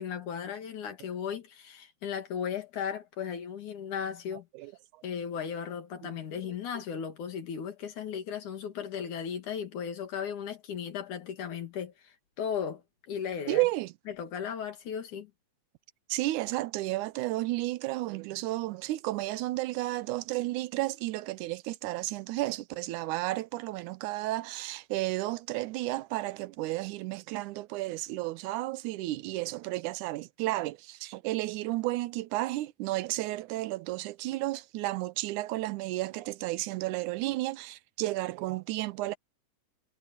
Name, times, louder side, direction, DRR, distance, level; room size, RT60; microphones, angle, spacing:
voice 1, 0.0-4.5 5.0-12.8 13.1-13.6 14.1-15.3, left 7 dB, 85° left, 3.8 m, -36 dB
voice 2, 13.5-13.9 16.1-39.2, right 18 dB, 85° right, 2.2 m, -32 dB
omnidirectional pair, 3.4 m